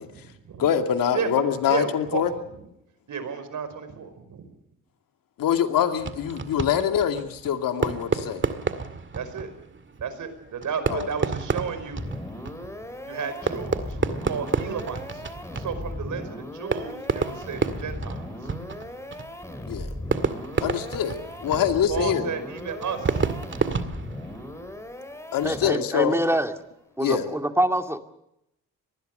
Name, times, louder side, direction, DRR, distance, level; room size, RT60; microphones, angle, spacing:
voice 1, 0.0-0.7 1.1-2.3 3.1-4.4 8.6-8.8 9.1-9.5 10.0-12.0 13.0-15.3 15.5-18.3 21.9-23.3, right 6 dB, 65° right, 5.1 m, -32 dB
voice 2, 0.6-2.3 5.4-8.4 10.9-11.1 19.6-19.9 20.6-22.3 25.3-26.2 27.0-27.3, left 9 dB, 80° left, 2.5 m, -24 dB
Fireworks, 6.0-24.8, right 5 dB, 35° right, 2.1 m, -31 dB
sound 1, 12.0-26.0, left 1 dB, 10° left, 4.3 m, -37 dB
voice 3, 25.4-26.5 27.0-28.0, right 1 dB, 10° right, 2.4 m, -25 dB
25.0 x 20.0 x 6.8 m
cardioid pair, 85°, 33 cm